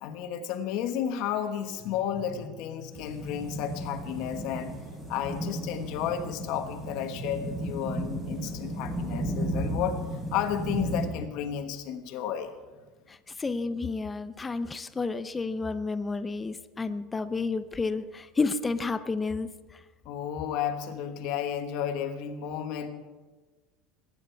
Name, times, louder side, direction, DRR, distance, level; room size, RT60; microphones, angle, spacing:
voice 1, 0.0-4.8 5.1-12.5 20.0-22.9, left 9 dB, 60° left, 7 dB, 1.3 m, -32 dB
sound 1, 2.9-11.1, right 1 dB, 15° right, 4.2 m, -34 dB
voice 2, 13.4-19.5, left 4 dB, 15° left, 12 dB, 0.6 m, -30 dB
21.0 x 9.9 x 4.6 m, 1.3 s
cardioid pair, 150°, 0 cm